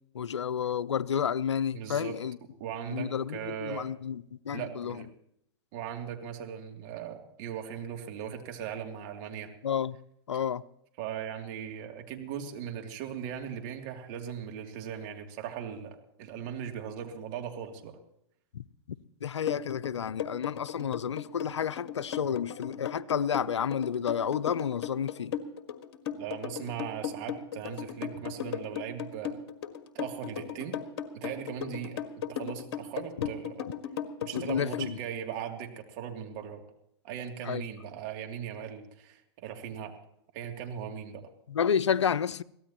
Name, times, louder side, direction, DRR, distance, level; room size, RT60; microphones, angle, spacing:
voice 1, 0.1-2.4 2.9-5.0 9.6-10.0 10.3-10.6 18.5-18.6 19.2-25.4 33.2-33.3 34.3-35.0 37.4-37.7 41.5-42.4, left 8 dB, 85° left, 0.6 m, -30 dB
voice 2, 1.7-2.2 2.6-3.9 4.5-5.1 5.7-9.5 11.0-18.0 26.2-29.4 29.9-30.8 31.1-32.0 32.3-33.7 34.2-36.6 37.0-40.0 40.3-41.3, right 9 dB, 45° right, 2.9 m, -39 dB
sound 1, 19.5-34.9, left 9 dB, 60° left, 1.8 m, -36 dB
23.0 x 17.0 x 3.0 m
hypercardioid pair, 120°, 14 cm